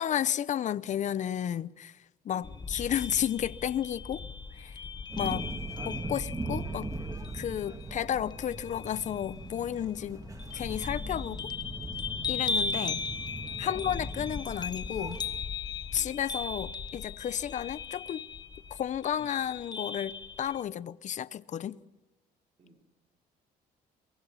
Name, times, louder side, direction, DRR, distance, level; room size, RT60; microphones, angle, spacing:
voice 1, 0.0-2.0 2.2-4.2 4.5-4.8 5.2-5.4 5.8-6.9 7.3-10.2 10.5-11.4 12.3-13.0 13.6-15.2 15.9-18.2 18.7-21.8, left 10 dB, 45° left, 0.7 m, -32 dB
voice 2, 2.3-2.7 6.3-6.5 7.5-7.7 10.1-10.2 13.0-13.1 13.6-13.8 16.0-16.2 19.2-19.4 22.6-22.8, right 3 dB, 35° right, 3.7 m, -55 dB
sound 1, 2.4-20.6, left 5 dB, 25° left, 1.3 m, -38 dB
sound 2, 5.1-15.4, right 2 dB, 20° right, 2.1 m, -40 dB
23.0 x 22.5 x 5.8 m
cardioid pair, 110°, 17 cm